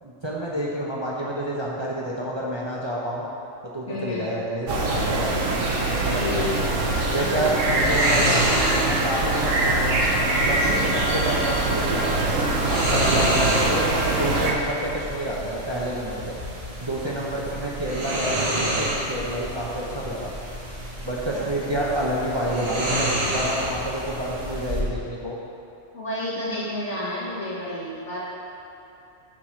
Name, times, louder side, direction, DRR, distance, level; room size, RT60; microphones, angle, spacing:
voice 1, 0.0-3.3 3.6-5.7 6.0-6.6 7.1-8.4 8.8-10.0 10.4-13.9 14.2-16.4 16.8-20.3 21.0-25.4, right 1 dB, 25° right, -5 dB, 0.8 m, -29 dB
voice 2, 3.9-4.3 6.2-6.5 7.4-7.6 10.7-11.0 21.3-21.4 21.9-22.0 25.9-28.2, left 1 dB, 65° left, -9 dB, 2.4 m, -31 dB
sound 1, 4.7-14.5, right 2 dB, 85° right, 1.4 m, -23 dB
sound 2, 6.4-24.8, right 1 dB, 55° right, 1.8 m, -30 dB
7.5 x 4.9 x 6.2 m, 2.8 s
omnidirectional pair, 1.3 m